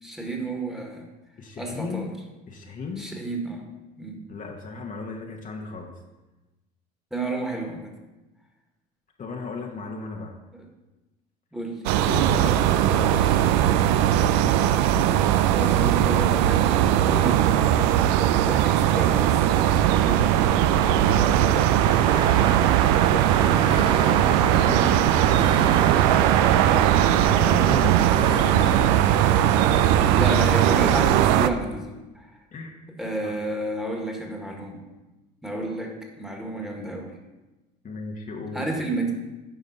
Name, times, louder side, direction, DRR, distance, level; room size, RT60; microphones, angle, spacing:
voice 1, 0.0-1.0 1.6-2.1 3.0-3.7 4.0-4.2 7.1-7.9 10.5-10.6 11.5-11.8 15.5-17.7 18.4-20.4 30.1-32.3 33.0-34.8 35.4-37.2 38.5-39.1, right 2 dB, ahead, 0 dB, 1.7 m, -31 dB
voice 2, 1.4-2.1 2.5-3.0 4.3-6.0 9.2-10.3 12.1-13.7 17.1-17.5 20.8-22.6 23.4-25.5 27.4-29.1 29.4-29.6 32.5-32.8 33.2-33.4 37.8-38.7, left 3 dB, 40° left, 0 dB, 1.1 m, -36 dB
sound 1, 11.8-31.5, right 11 dB, 80° right, 0.4 m, -19 dB
sound 2, 21.8-30.4, right 4 dB, 25° right, 0.5 m, -32 dB
9.4 x 5.2 x 4.1 m, 1.1 s
supercardioid pair, 80°, 21 cm